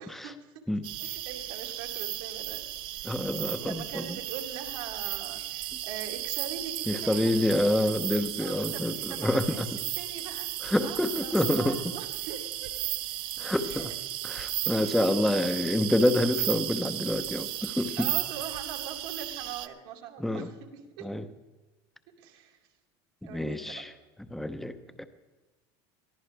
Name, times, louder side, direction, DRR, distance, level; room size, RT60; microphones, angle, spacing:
voice 1, 0.0-0.5 1.0-2.6 2.9-3.3 3.6-7.8 8.4-9.7 10.0-10.5 10.8-12.7 13.6-14.0 14.8-15.7 18.0-21.1 22.2-22.6 23.2-23.8 24.9-25.0, right 8 dB, 80° right, 0 dB, 2.7 m, -42 dB
sound 1, 0.8-19.7, right 14 dB, 45° right, 0.6 m, -35 dB
voice 2, 3.0-4.0 6.9-9.7 10.6-11.8 13.4-13.9 14.2-18.1 20.2-20.5 21.0-21.2 23.3-23.9 24.3-25.0, left 1 dB, ahead, 9 dB, 0.8 m, -27 dB
22.5 x 14.5 x 3.4 m, 1.2 s
cardioid pair, 155°, 12 cm